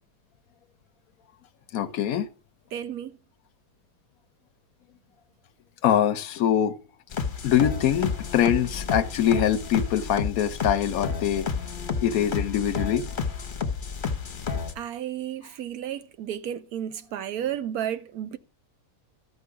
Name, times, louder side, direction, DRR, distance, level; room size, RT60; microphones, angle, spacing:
voice 1, 1.7-2.3 5.8-6.8 7.4-11.5 12.0-13.1, left 10 dB, 70° left, 1.0 m, -23 dB
voice 2, 2.7-3.2 14.8-18.4, right 10 dB, 70° right, 1.0 m, -32 dB
sound 1, 7.1-14.7, left 5 dB, 40° left, 0.9 m, -31 dB
13.0 x 5.4 x 4.7 m
omnidirectional pair, 1.7 m